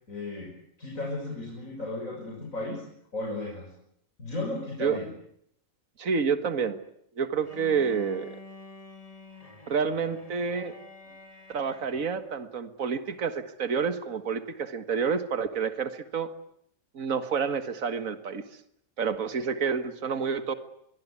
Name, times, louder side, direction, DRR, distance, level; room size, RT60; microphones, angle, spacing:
voice 1, 0.1-0.5 0.8-2.8 3.1-3.7 4.2-5.1, left 2 dB, 70° left, -1 dB, 6.8 m, -34 dB
voice 2, 6.0-6.8 7.2-8.3 9.7-10.8 11.5-16.3 16.9-18.4 19.0-20.5, right 6 dB, 75° right, 10 dB, 2.1 m, -29 dB
Bowed string instrument, 7.4-12.3, left 2 dB, 25° left, 2.8 m, -48 dB
25.0 x 22.5 x 9.7 m, 0.72 s
omnidirectional pair, 1.4 m